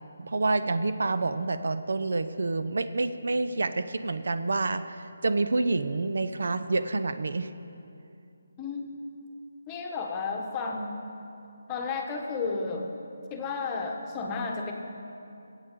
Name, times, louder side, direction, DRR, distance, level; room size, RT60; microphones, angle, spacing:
voice 1, 0.2-7.5, right 3 dB, 70° right, 11 dB, 0.6 m, -28 dB
voice 2, 8.6-8.9 9.7-11.0 11.7-12.8 13.3-14.7, left 4 dB, 15° left, 1 dB, 1.1 m, -32 dB
21.5 x 8.2 x 3.7 m, 2.7 s
figure-of-eight pair, 165°, 0 cm